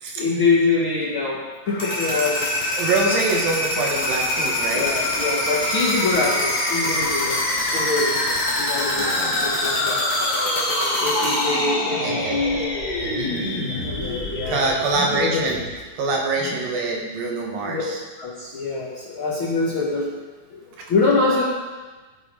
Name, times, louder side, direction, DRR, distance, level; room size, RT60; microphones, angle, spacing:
voice 1, 0.2-2.5 4.7-10.0 11.0-12.6 13.8-14.7 15.0-15.6 17.7-17.8 18.2-20.1 20.5-21.4, left 3 dB, 50° left, -4 dB, 1.6 m, -24 dB
sound 1, 1.7-15.5, left 1 dB, 20° left, 2.5 m, -24 dB
voice 2, 2.7-4.9 8.9-9.6 12.0-12.4 13.0-13.9 14.5-15.6 16.0-18.0, right 3 dB, 80° right, -1 dB, 3.4 m, -25 dB
16.5 x 6.9 x 5.0 m, 1.3 s
omnidirectional pair, 4.1 m